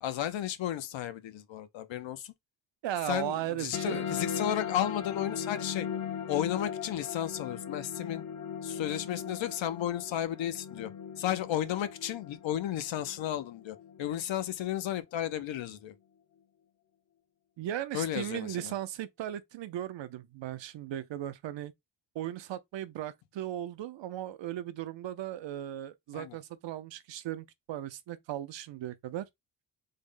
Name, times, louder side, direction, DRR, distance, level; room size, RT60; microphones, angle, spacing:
voice 1, 0.0-2.3 3.1-5.9 6.3-8.2 8.6-10.9 11.2-15.9 17.9-18.7 26.1-26.4, left 11 dB, 85° left, 0.6 m, -33 dB
voice 2, 2.8-4.1 17.6-21.7 22.1-29.3, right 12 dB, 75° right, 0.6 m, -37 dB
sound 1, 3.7-14.7, left 7 dB, 45° left, 0.5 m, -39 dB
3.7 x 2.0 x 3.6 m
wide cardioid pair, 125°, 44 cm